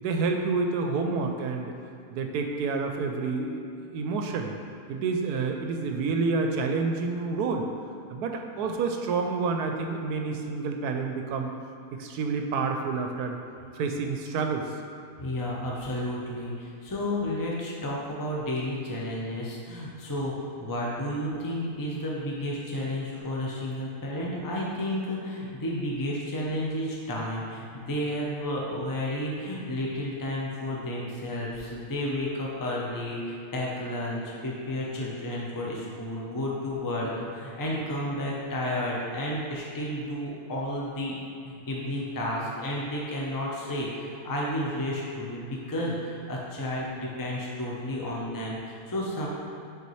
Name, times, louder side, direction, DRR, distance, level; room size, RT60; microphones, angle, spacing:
voice 1, 0.0-1.7 2.1-3.6 3.9-4.5 4.9-7.7 8.1-11.5 11.9-13.4 13.7-14.7, right 4 dB, 75° right, 3 dB, 1.1 m, -28 dB
voice 2, 15.2-41.1 41.4-49.3, left 1 dB, 20° left, -4 dB, 0.5 m, -32 dB
6.7 x 4.5 x 3.1 m, 2.6 s
omnidirectional pair, 1.7 m